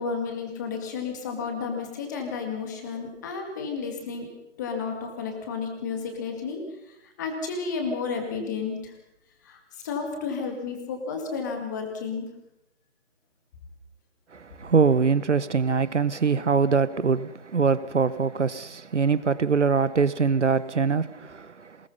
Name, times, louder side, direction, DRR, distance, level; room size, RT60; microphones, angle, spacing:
voice 1, 0.0-4.3 4.6-6.6 6.9-8.9 9.4-12.3, left 5 dB, 15° left, 2.1 m, -32 dB
voice 2, 14.3-21.9, right 5 dB, 65° right, 1.1 m, -23 dB
23.0 x 20.5 x 5.6 m
figure-of-eight pair, 165°, 37 cm